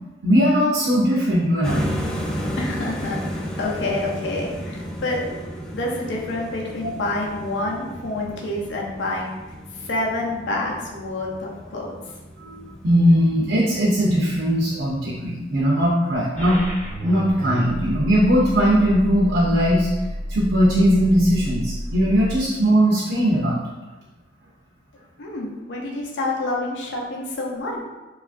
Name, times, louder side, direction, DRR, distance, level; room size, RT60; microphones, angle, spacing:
voice 1, 0.2-1.9 6.8-6.9 12.4-16.6 17.0-19.9 20.3-23.6, equal, 85° right, -6 dB, 0.6 m, -19 dB
sound 1, 1.6-15.6, equal, 5° left, 0.3 m, -34 dB
voice 2, 2.6-3.3 3.5-5.3 5.7-9.3 9.8-12.0 25.2-27.8, left 2 dB, 75° left, -2 dB, 0.5 m, -27 dB
sound 2, 16.4-22.4, equal, 40° left, 0.8 m, -31 dB
3.0 x 2.4 x 2.4 m, 1.1 s
head